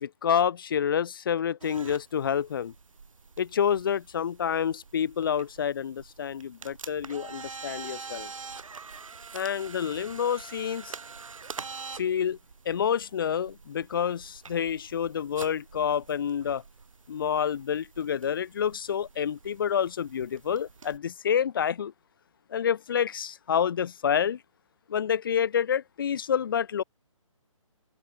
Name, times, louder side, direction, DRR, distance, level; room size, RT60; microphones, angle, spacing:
voice 1, 0.0-2.7 3.4-8.3 9.3-10.9 11.9-12.4 12.7-16.6 17.1-21.9 22.5-24.4 24.9-26.8, left 8 dB, 40° left, 0.6 m, -28 dB
sound 1, 1.6-21.0, right 5 dB, 75° right, 6.9 m, -46 dB
hypercardioid pair, 165°, 17 cm